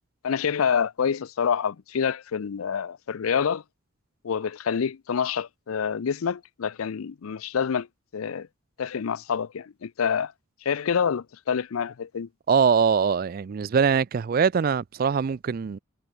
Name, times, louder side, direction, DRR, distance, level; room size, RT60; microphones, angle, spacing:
voice 1, 0.2-3.6 4.2-7.9 8.1-8.5 8.8-10.3 10.6-12.3, left 7 dB, 85° left, 0.5 m, -27 dB
voice 2, 12.5-15.8, right 6 dB, 45° right, 0.3 m, -22 dB
head